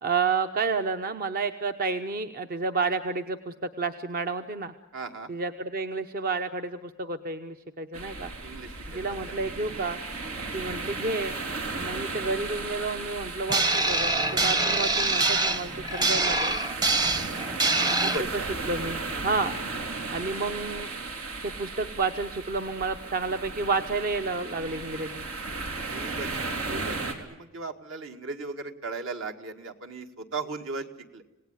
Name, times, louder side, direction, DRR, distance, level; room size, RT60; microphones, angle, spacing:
voice 1, 0.0-4.7 5.3-8.3 8.9-10.0 10.5-11.3 11.8-16.6 17.9-18.0 18.3-18.4 18.7-19.5 20.1-20.9 21.4-25.2, right 4 dB, 45° right, 8 dB, 0.9 m, -30 dB
voice 2, 4.9-5.3 8.4-9.0 9.3-9.4 10.2-10.5 11.8-11.9 17.6-18.5 20.3-20.5 25.9-30.9 31.1-31.2, right 3 dB, 65° right, 5 dB, 2.1 m, -37 dB
sound 1, 7.9-27.1, right 3 dB, 90° right, 3.6 m, -35 dB
sound 2, 13.5-18.2, right 2 dB, 20° right, 0.9 m, -25 dB
27.0 x 18.0 x 9.7 m, 0.99 s
head